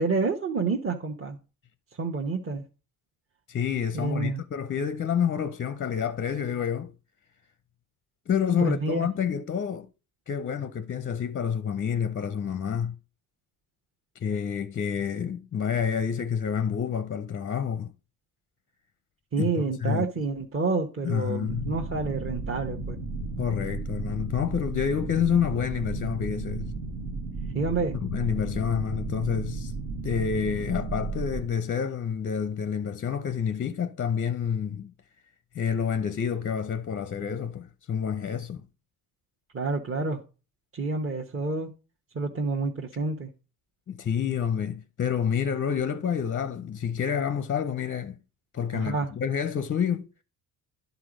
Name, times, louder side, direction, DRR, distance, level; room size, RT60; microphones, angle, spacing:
voice 1, 0.0-1.4 2.0-2.6 3.9-4.4 8.6-9.1 19.3-23.0 27.5-28.0 39.5-40.2 40.7-41.7 42.1-43.3 48.7-49.1, right 3 dB, 35° right, 1.1 m, -28 dB
voice 2, 3.5-6.9 8.3-9.9 10.3-13.0 14.2-17.9 19.4-20.1 21.0-21.7 23.4-26.7 28.0-29.7 30.0-34.9 35.5-38.6 43.9-48.2 48.5-50.1, left 7 dB, 30° left, 0.5 m, -28 dB
sound 1, 21.5-31.5, right 3 dB, 80° right, 1.6 m, -34 dB
10.5 x 4.0 x 5.0 m
cardioid pair, 85°, 40 cm